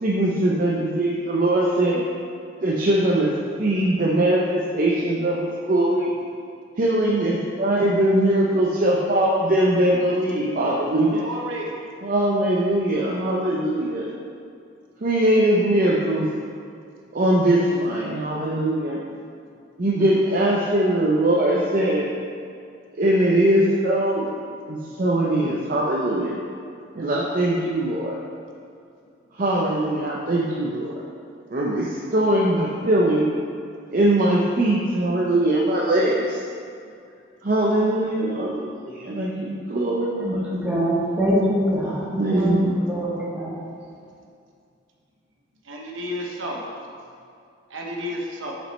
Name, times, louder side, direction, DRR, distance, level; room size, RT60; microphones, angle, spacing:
voice 1, 0.0-2.0 2.6-3.3 3.6-6.1 6.8-11.2 12.0-14.1 15.0-16.3 17.1-19.0 19.8-22.1 23.0-24.3 24.7-26.4 26.9-28.2 29.4-30.9 31.5-33.3 33.9-36.4 37.4-40.4 41.8-42.9, right 1 dB, 40° right, -4 dB, 0.5 m, -21 dB
voice 2, 11.1-11.7 14.0-14.1 19.1-19.3 45.7-46.6 47.7-48.5, equal, 70° right, -1 dB, 0.9 m, -32 dB
voice 3, 40.2-42.0 42.3-42.5 42.9-43.5, equal, 5° right, -7 dB, 1.3 m, -23 dB
6.0 x 5.1 x 4.1 m, 2.4 s
head